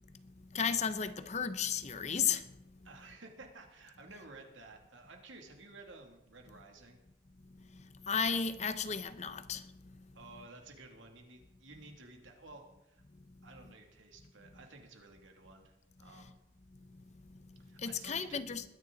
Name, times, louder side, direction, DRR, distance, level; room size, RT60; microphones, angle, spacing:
voice 1, 0.5-2.4 8.1-9.6 17.8-18.6, left 6 dB, 35° left, 0.7 m, -33 dB
voice 2, 2.8-7.0 10.1-13.0 13.4-15.7 16.0-16.3 17.6-18.4, right 3 dB, 85° right, 2.5 m, -53 dB
21.5 x 10.0 x 4.0 m
head